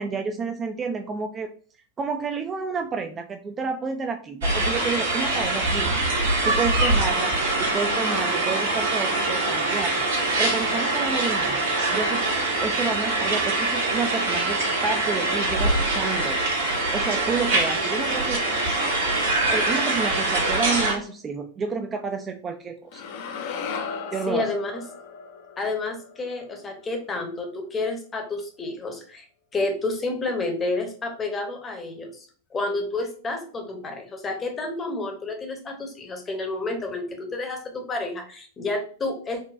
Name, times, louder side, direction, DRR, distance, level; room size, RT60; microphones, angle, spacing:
voice 1, 0.0-1.5 2.0-5.9 6.4-12.2 12.6-18.4 19.5-23.0 24.1-24.5, right 5 dB, 20° right, 5 dB, 0.3 m, -30 dB
sound 1, 4.4-20.9, right 2 dB, 65° right, 1.0 m, -24 dB
sound 2, 22.9-27.1, left 6 dB, 50° left, 0.5 m, -36 dB
voice 2, 24.3-24.8 25.6-29.3 29.5-32.3 32.5-39.4, left 2 dB, 20° left, 3 dB, 0.8 m, -30 dB
4.0 x 2.2 x 2.4 m, 0.42 s
figure-of-eight pair, 90°, 0 cm